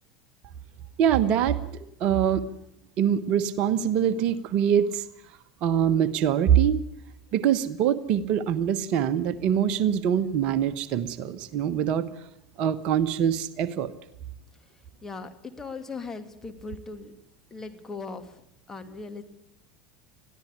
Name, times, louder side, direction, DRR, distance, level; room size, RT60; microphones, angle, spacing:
voice 1, 1.0-2.4 3.0-5.0 5.6-6.8 7.3-12.1 12.6-13.9, right 9 dB, 50° right, 12 dB, 1.1 m, -24 dB
voice 2, 14.7-17.1 17.5-18.4 18.7-19.2, left 4 dB, 20° left, 6 dB, 2.6 m, -39 dB
21.5 x 14.5 x 8.4 m, 0.76 s
figure-of-eight pair, 75°, 2 cm